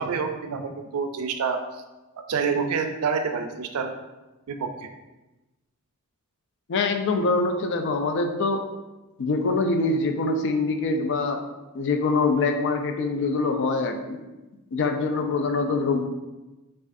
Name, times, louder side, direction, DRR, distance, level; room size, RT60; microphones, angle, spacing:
voice 1, 0.0-1.8 2.2-3.9 4.5-4.9, right 5 dB, 70° right, 6 dB, 0.4 m, -28 dB
voice 2, 6.7-8.6 9.2-11.4 11.7-14.2 14.7-16.0, left 3 dB, 55° left, 5 dB, 0.4 m, -24 dB
4.9 x 2.4 x 2.5 m, 1.1 s
head